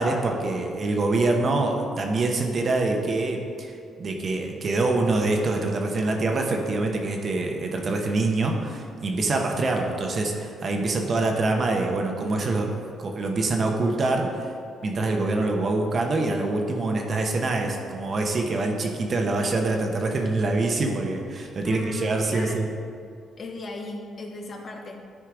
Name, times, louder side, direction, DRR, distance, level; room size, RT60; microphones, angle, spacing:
voice 1, 0.0-3.7 4.0-12.7 13.0-14.5 14.8-22.7, right 2 dB, 45° right, 2 dB, 1.1 m, -25 dB
voice 2, 16.8-17.4 21.6-22.6 23.4-25.0, left 2 dB, 45° left, 1 dB, 1.2 m, -38 dB
10.0 x 4.5 x 4.9 m, 2.3 s
cardioid pair, 90°, 0 cm